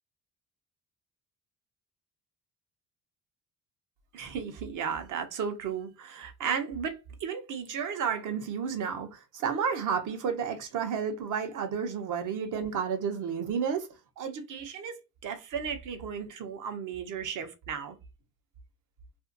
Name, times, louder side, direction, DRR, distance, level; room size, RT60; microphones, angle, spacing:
voice 1, 4.1-13.9 14.2-18.0, right 7 dB, 65° right, 0.8 m, -33 dB
2.6 x 2.6 x 2.5 m
cardioid pair, 100°, 33 cm